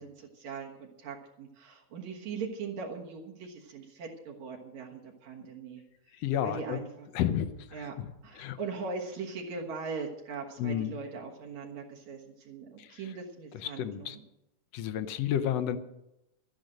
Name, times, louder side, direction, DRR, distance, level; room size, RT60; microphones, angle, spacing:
voice 1, 0.0-5.8 6.4-7.1 7.7-8.0 8.2-12.2 12.5-14.2, right 5 dB, 75° right, -1 dB, 2.7 m, -40 dB
voice 2, 6.1-6.8 7.1-8.6 10.6-10.9 12.8-13.0 13.5-14.2 14.7-15.8, left 10 dB, 70° left, 11 dB, 1.7 m, -32 dB
12.0 x 10.5 x 6.4 m, 0.89 s
omnidirectional pair, 3.3 m